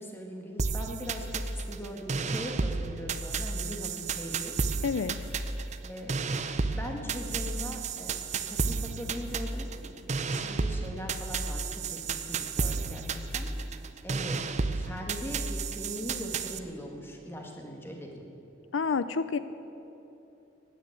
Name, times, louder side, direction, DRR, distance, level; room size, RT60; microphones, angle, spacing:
voice 1, 0.0-4.6 5.8-6.1 6.7-8.2 8.5-10.0 10.3-13.7 14.0-14.4 14.7-18.2, equal, 10° left, 1 dB, 1.8 m, -40 dB
sound 1, 0.6-16.6, right 4 dB, 35° right, 0.6 m, -32 dB
voice 2, 4.8-5.2 18.7-19.4, left 5 dB, 90° left, 13 dB, 0.5 m, -28 dB
16.5 x 9.3 x 9.3 m, 3.0 s
head